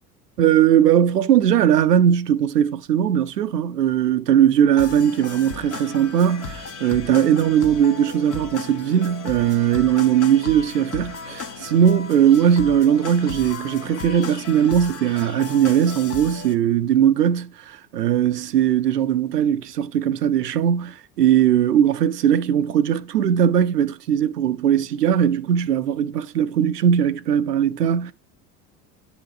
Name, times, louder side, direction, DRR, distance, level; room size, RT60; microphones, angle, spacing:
voice 1, 0.4-28.1, right 9 dB, 80° right, 0.6 m, -19 dB
sound 1, 4.8-16.5, left 4 dB, 30° left, 1.1 m, -35 dB
9.2 x 3.8 x 3.8 m
figure-of-eight pair, 70°, 47 cm